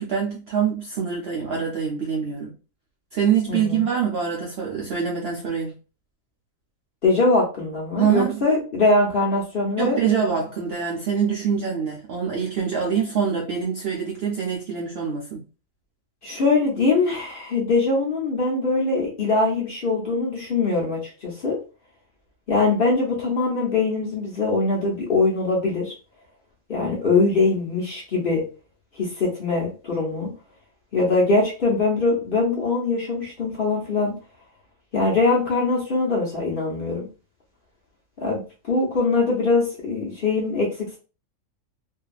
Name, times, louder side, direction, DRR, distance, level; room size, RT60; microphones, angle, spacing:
voice 1, 0.0-2.5 3.1-5.8 8.0-8.5 9.8-15.4, right 7 dB, 65° right, 0.6 m, -25 dB
voice 2, 3.5-3.8 7.0-10.0 16.2-21.6 22.5-25.9 26.7-28.4 28.9-30.3 30.9-34.1 34.9-37.1 38.2-38.4 38.7-41.0, left 3 dB, 50° left, 0.7 m, -22 dB
2.6 x 2.3 x 2.3 m
omnidirectional pair, 1.6 m